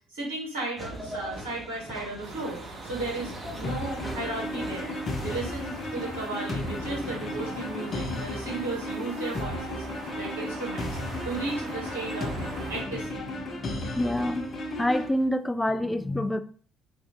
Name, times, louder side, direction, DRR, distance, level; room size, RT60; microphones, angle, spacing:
voice 1, 0.1-5.0 5.2-9.8 10.1-11.0 11.2-12.3 12.7-13.2, right 2 dB, 80° right, -4 dB, 1.6 m, -35 dB
sound 1, 0.8-15.3, right 1 dB, 5° right, 1.1 m, -45 dB
sound 2, 2.2-12.8, right 4 dB, 60° right, 0.6 m, -43 dB
sound 3, 3.6-15.1, left 1 dB, 40° left, 0.8 m, -34 dB
voice 2, 13.9-14.5 14.8-16.4, left 1 dB, 10° left, 9 dB, 0.3 m, -26 dB
3.2 x 2.5 x 3.6 m, 0.44 s
figure-of-eight pair, 50°, 0 cm